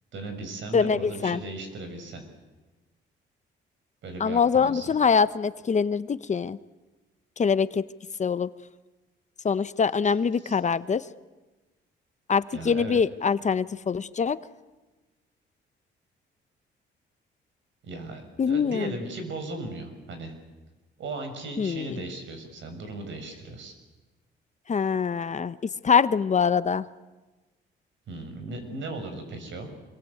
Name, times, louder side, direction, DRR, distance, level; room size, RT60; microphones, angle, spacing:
voice 1, 0.1-2.2 4.0-4.9 10.0-10.1 10.4-10.6 12.5-13.0 17.8-20.3 21.0-23.7 28.1-29.7, right 2 dB, 70° right, 7 dB, 6.7 m, -37 dB
voice 2, 0.7-1.4 4.2-6.6 7.4-7.9 8.2-8.5 9.4-11.0 12.3-14.4 18.4-18.9 21.6-22.0 24.7-25.6 25.8-26.8, left 6 dB, 35° left, 14 dB, 0.9 m, -24 dB
26.5 x 22.5 x 8.5 m, 1.2 s
cardioid pair, 90°, 20 cm